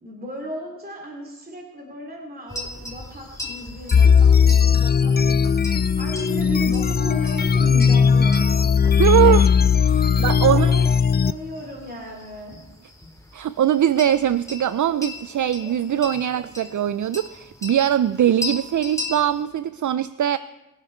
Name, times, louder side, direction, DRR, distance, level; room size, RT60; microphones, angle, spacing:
voice 1, 0.0-8.7 9.1-9.5 10.0-10.9 11.2-12.6, equal, 30° right, -1 dB, 2.6 m, -36 dB
sound 1, 2.5-19.4, left 2 dB, 10° left, 3.2 m, -38 dB
sound 2, 3.9-11.3, left 6 dB, 30° left, 0.4 m, -17 dB
voice 2, 9.0-9.5 9.9-10.7 13.3-20.4, right 10 dB, 65° right, 14 dB, 0.4 m, -21 dB
23.5 x 9.6 x 4.4 m, 1.0 s
wide cardioid pair, 85°, 33 cm